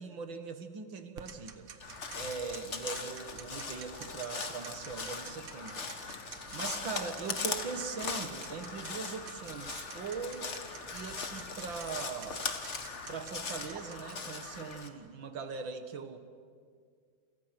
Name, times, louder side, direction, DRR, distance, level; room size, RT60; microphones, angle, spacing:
voice 1, 0.0-1.7 2.1-6.1 6.5-10.5 10.9-12.5 13.1-16.2, right 5 dB, 65° right, 8 dB, 2.2 m, -41 dB
Tick-tock, 1.2-14.4, right 7 dB, 85° right, 2.2 m, -51 dB
Crow, 1.8-14.9, left 4 dB, 35° left, 1.7 m, -40 dB
29.0 x 27.5 x 5.9 m, 2.1 s
omnidirectional pair, 2.4 m